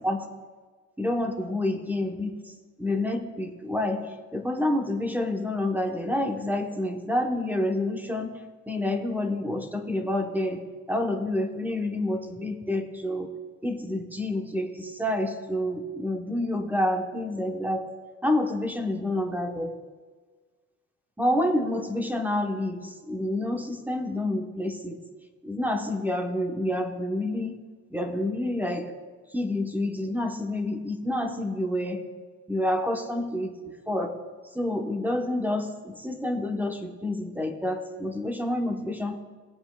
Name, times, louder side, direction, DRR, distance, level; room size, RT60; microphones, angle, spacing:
voice 1, 1.0-10.6 10.9-13.3 13.6-17.9 18.2-19.8 21.2-25.0 25.4-27.6 27.9-28.9 29.3-32.1 32.5-34.2 34.5-39.2, left 1 dB, 5° right, 3 dB, 1.2 m, -28 dB
18.5 x 7.9 x 2.4 m, 1.5 s
cardioid pair, 90°, 30 cm